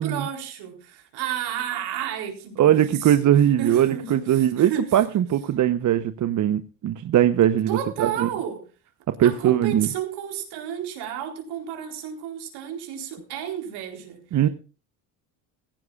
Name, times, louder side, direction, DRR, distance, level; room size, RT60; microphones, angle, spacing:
voice 1, 0.0-3.3 3.6-4.9 5.8-5.9 7.7-8.6 9.2-14.2, right 9 dB, 70° right, 4.1 m, -32 dB
voice 2, 2.6-8.3 9.2-9.9 14.3-14.5, right 11 dB, 45° right, 0.9 m, -20 dB
16.5 x 15.5 x 2.4 m
supercardioid pair, 85°, 41 cm